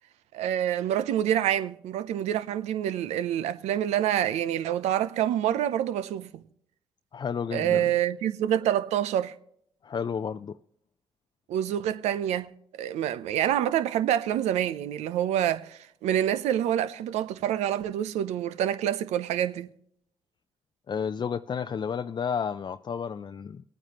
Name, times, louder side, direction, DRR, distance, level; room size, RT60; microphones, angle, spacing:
voice 1, 0.3-6.4 7.5-9.3 11.5-12.5 12.8-19.7, right 11 dB, 85° right, 0.6 m, -27 dB
voice 2, 7.1-7.8 9.8-10.6 20.9-23.6, left 7 dB, 45° left, 0.5 m, -31 dB
20.5 x 9.1 x 2.9 m
supercardioid pair, 50°, 11 cm